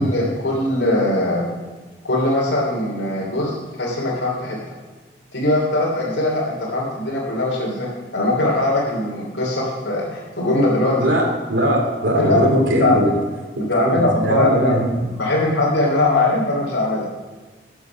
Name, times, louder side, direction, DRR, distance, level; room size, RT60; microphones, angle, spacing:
voice 1, 0.0-1.5 2.0-4.6 5.3-11.0 12.1-12.4 12.8-13.1 13.5-14.7 15.2-17.1, left 1 dB, 85° left, -4 dB, 3.0 m, -21 dB
voice 2, 11.0-13.1 13.6-15.0, equal, 85° right, 1 dB, 2.9 m, -20 dB
13.0 x 8.0 x 5.8 m, 1.3 s
head